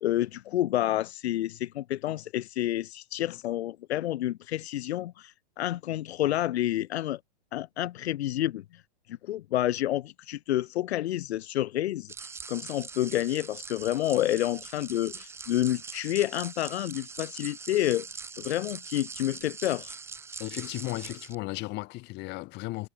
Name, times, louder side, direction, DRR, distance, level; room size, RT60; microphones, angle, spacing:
voice 1, 0.0-7.2 7.5-8.8 9.1-18.1 18.4-20.0, left 14 dB, 70° left, 0.9 m, -29 dB
sound 1, 12.1-21.3, right 5 dB, 5° right, 1.2 m, -42 dB
voice 2, 20.4-22.9, left 22 dB, 30° left, 4.6 m, -35 dB
supercardioid pair, 155°, 33 cm